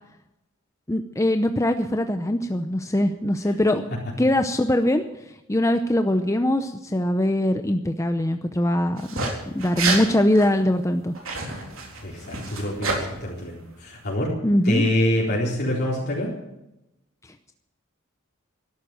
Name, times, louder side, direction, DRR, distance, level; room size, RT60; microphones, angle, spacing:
voice 1, 0.9-3.8 4.2-5.0 5.5-9.0 9.5-11.1 14.4-14.8, left 1 dB, 15° left, 7 dB, 0.7 m, -22 dB
sound 1, 9.0-9.3 9.6-10.0 10.3-10.5 11.2-13.0, right 3 dB, 70° right, 4.0 m, -28 dB
voice 2, 12.0-14.3 14.6-16.3, left 1 dB, 50° left, -4 dB, 4.1 m, -25 dB
13.0 x 12.0 x 7.6 m, 0.91 s
head